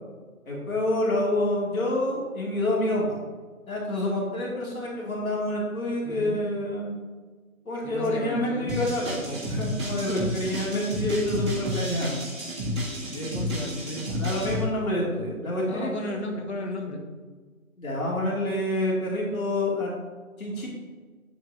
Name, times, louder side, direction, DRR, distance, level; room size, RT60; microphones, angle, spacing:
voice 1, 0.5-3.2 3.7-7.0 7.7-12.1 14.1-16.1 17.8-19.9 20.4-20.7, left 1 dB, 75° left, -4 dB, 2.6 m, -27 dB
voice 2, 6.0-6.4 7.8-8.7 13.1-14.1 15.7-17.0, left 1 dB, 50° left, 2 dB, 1.6 m, -33 dB
sound 1, 8.7-14.6, equal, 20° right, 1.8 m, -31 dB
9.2 x 8.2 x 2.7 m, 1.4 s
figure-of-eight pair, 165°, 42 cm